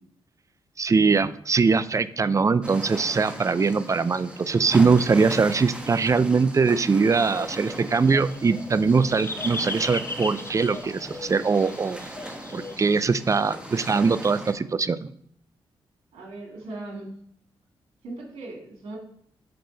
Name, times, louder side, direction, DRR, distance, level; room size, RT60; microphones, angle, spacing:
voice 1, 0.8-12.0 12.5-15.0, right 4 dB, 30° right, 15 dB, 0.4 m, -22 dB
sound 1, 2.6-14.5, right 1 dB, 10° right, 1.1 m, -39 dB
sound 2, 7.3-12.8, left 2 dB, 25° left, 0.7 m, -37 dB
voice 2, 16.1-17.1 18.0-19.0, right 2 dB, 90° right, -1 dB, 1.9 m, -39 dB
6.7 x 3.8 x 3.9 m, 0.67 s
cardioid pair, 60°, 10 cm